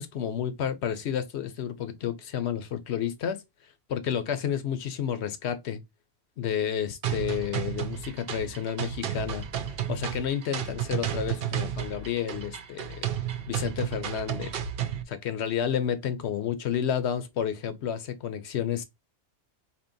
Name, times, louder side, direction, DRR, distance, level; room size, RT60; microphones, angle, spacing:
voice 1, 0.0-3.4 3.9-5.8 6.4-13.1 13.5-14.6 15.1-18.8, left 9 dB, 70° left, 1.0 m, -31 dB
sound 1, 7.0-15.0, right 10 dB, 60° right, 0.8 m, -32 dB
4.4 x 2.9 x 2.7 m
omnidirectional pair, 1.2 m